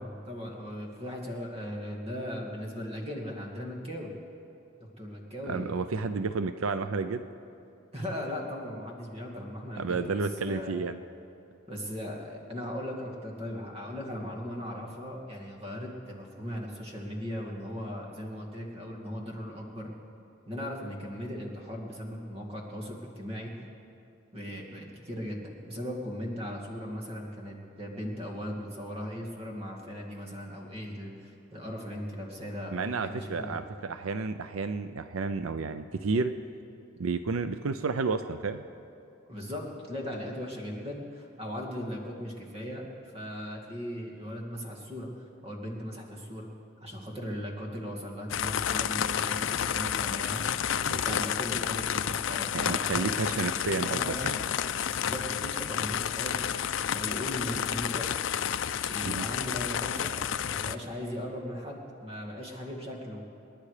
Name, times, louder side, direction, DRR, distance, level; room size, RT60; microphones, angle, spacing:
voice 1, 0.0-4.1 5.0-5.8 7.9-10.8 11.7-19.9 20.5-23.5 24.3-33.5 39.3-45.1 45.4-46.5 46.8-50.5 50.9-53.4 53.9-54.2 55.0-58.2 58.9-63.2, equal, 30° right, 0 dB, 2.2 m, -38 dB
voice 2, 5.5-7.2 9.8-11.0 32.7-36.3 37.0-38.6 50.9-51.2 52.5-54.4 59.1-59.3, right 4 dB, 85° right, 10 dB, 0.6 m, -31 dB
sound 1, 48.3-60.7, left 9 dB, 70° left, 0.5 m, -30 dB
28.0 x 10.5 x 5.0 m, 2.6 s
head